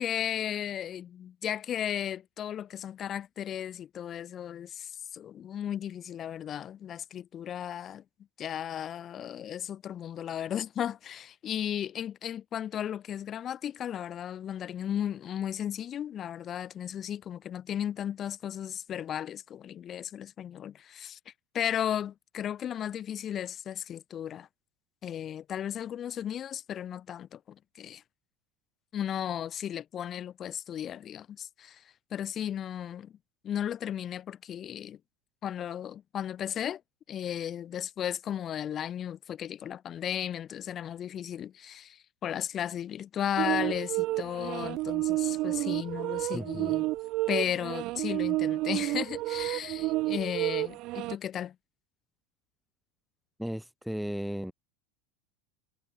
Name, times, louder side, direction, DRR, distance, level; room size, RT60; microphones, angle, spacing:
voice 1, 0.0-8.0 8.4-21.2 21.5-24.5 25.0-28.0 28.9-31.8 32.1-33.1 33.4-35.0 35.4-36.8 37.1-46.8 47.3-51.5, left 10 dB, 35° left, 1.2 m, -35 dB
sound 1, 43.4-51.2, right 19 dB, 55° right, 0.3 m, -30 dB
voice 2, 46.3-46.7 53.4-54.5, equal, ahead, 0.7 m, -35 dB
hypercardioid pair, 90°, 0 cm